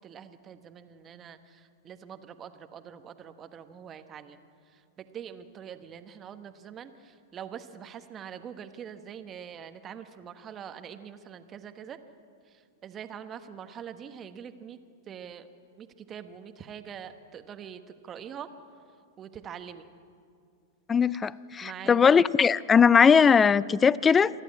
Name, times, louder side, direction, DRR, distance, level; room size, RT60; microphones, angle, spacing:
voice 1, 0.0-4.4 4.7-12.0 12.5-14.8 15.1-15.5 15.8-18.5 19.2-19.8 21.6-22.1, right 8 dB, 30° right, 9 dB, 1.3 m, -44 dB
voice 2, 20.9-24.3, left 6 dB, 20° left, 21 dB, 0.5 m, -20 dB
27.5 x 11.5 x 8.5 m, 2.4 s
hypercardioid pair, 100°, 0 cm